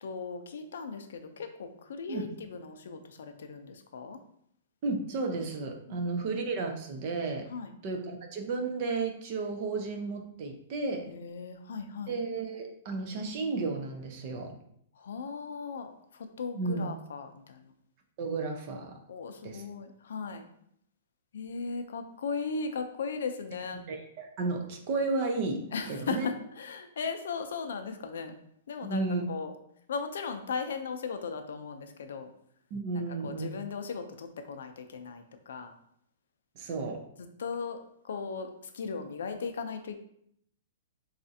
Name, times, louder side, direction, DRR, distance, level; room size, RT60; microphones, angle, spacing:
voice 1, 0.0-4.2 5.9-6.3 7.5-7.7 11.1-12.2 15.0-17.7 19.1-20.5 21.3-23.8 25.7-28.4 28.7-29.5 29.9-32.3 33.2-35.7 37.4-37.8 38.0-40.0, left 5 dB, 75° left, 7 dB, 0.4 m, -37 dB
voice 2, 4.8-7.5 7.8-11.1 12.1-14.5 16.6-16.9 18.2-19.0 19.4-19.6 23.9-26.3 28.8-29.3 32.7-33.5 36.6-37.0, right 3 dB, 30° right, 3 dB, 0.4 m, -33 dB
4.1 x 2.4 x 2.7 m, 0.70 s
hypercardioid pair, 180°, 0 cm